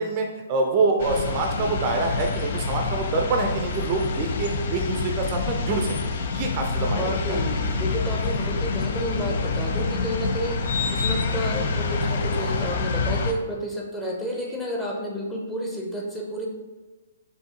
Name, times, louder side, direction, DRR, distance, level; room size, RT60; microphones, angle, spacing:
voice 1, 0.0-5.9 6.3-7.1, right 3 dB, 35° right, 3 dB, 0.5 m, -25 dB
sound 1, 1.0-13.3, left 4 dB, 55° left, 0.5 m, -27 dB
voice 2, 7.0-16.5, equal, 5° left, -3 dB, 0.8 m, -31 dB
5.1 x 2.7 x 3.7 m, 1.3 s
hypercardioid pair, 130°, 0 cm